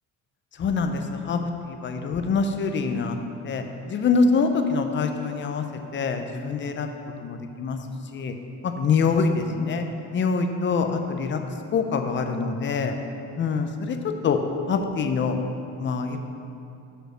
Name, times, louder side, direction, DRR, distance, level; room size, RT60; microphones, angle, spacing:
voice 1, 0.6-3.2 3.4-5.6 5.9-6.9 7.2-7.8 8.1-8.3 8.6-9.3 9.6-9.8 10.1-11.4 11.7-12.9 13.4-14.4 14.7-15.4 15.8-16.2, left 5 dB, 35° left, 6 dB, 0.6 m, -25 dB
6.5 x 5.2 x 6.3 m, 2.6 s
cardioid pair, 130°, 36 cm